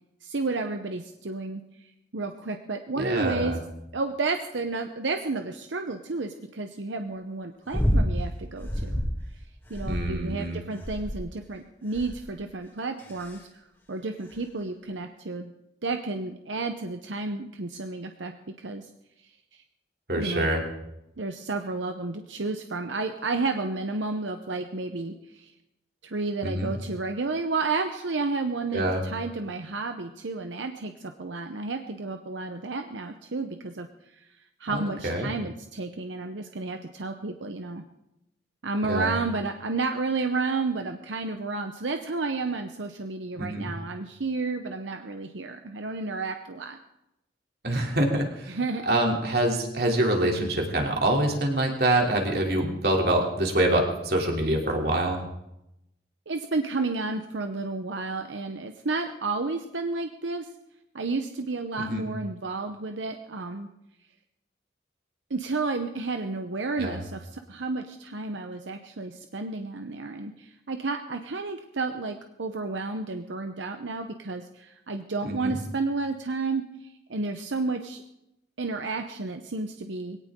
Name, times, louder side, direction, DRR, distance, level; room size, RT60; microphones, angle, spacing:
voice 1, 0.2-1.6 2.1-3.6 3.9-9.0 9.7-13.4 13.9-15.5 15.8-18.3 18.6-18.8 20.2-20.5 21.2-25.5 26.0-33.9 34.6-37.8 38.6-46.8 48.5-48.8 56.3-60.5 60.9-63.7 65.3-76.6 77.1-78.0 78.6-80.2, right 3 dB, 90° right, 6 dB, 0.9 m, -31 dB
voice 2, 3.0-3.6 9.8-10.6 20.1-20.6 26.4-26.7 28.7-29.0 34.7-35.3 38.8-39.1 43.4-43.7 47.6-48.5 48.9-55.2 61.8-62.1 66.8-67.0 75.2-75.6, right 1 dB, 55° right, 1 dB, 3.1 m, -25 dB
sound 1, 7.7-8.2 8.6-9.2 9.7-10.3 10.8-11.3 11.9-12.3 13.0-13.4 14.3-14.4, equal, 10° left, 2.7 m, -27 dB
21.5 x 17.5 x 3.7 m, 0.87 s
head